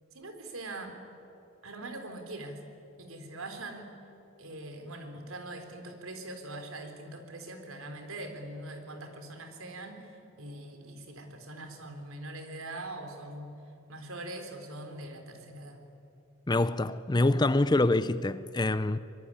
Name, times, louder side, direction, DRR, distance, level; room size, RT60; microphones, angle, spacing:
voice 1, 0.1-1.0 1.6-2.6 3.0-3.9 4.4-13.6 13.9-15.8, right 2 dB, 80° right, 3.8 m, -42 dB
voice 2, 16.5-19.0, left 2 dB, 20° left, 0.5 m, -25 dB
23.5 x 22.5 x 10.0 m
head